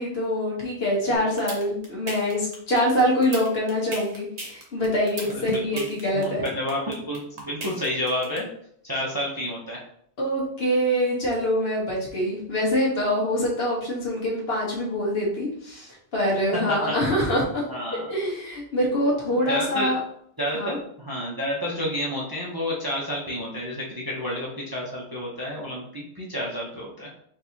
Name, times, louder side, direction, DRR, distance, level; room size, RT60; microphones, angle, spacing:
voice 1, 0.0-6.5 10.2-17.6 17.9-20.0 20.5-20.8, equal, 60° left, -4 dB, 1.4 m, -25 dB
sound 1, 1.2-8.4, right 2 dB, 75° right, 1.3 m, -35 dB
voice 2, 5.2-5.9 6.1-8.5 8.8-9.8 16.7-16.9 17.7-18.1 19.5-19.9 20.4-27.1, equal, 25° right, -5 dB, 0.6 m, -30 dB
4.6 x 2.8 x 2.7 m, 0.68 s
omnidirectional pair, 1.2 m